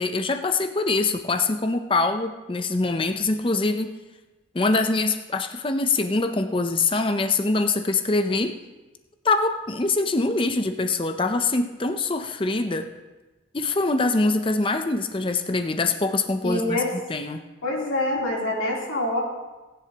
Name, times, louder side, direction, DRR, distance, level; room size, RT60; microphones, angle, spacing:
voice 1, 0.0-3.9 4.5-8.6 9.2-12.9 13.5-17.4, left 3 dB, 25° left, 8 dB, 0.6 m, -24 dB
voice 2, 16.4-16.9 17.6-19.2, left 1 dB, 90° left, -4 dB, 3.3 m, -25 dB
19.0 x 10.5 x 2.9 m, 1.1 s
head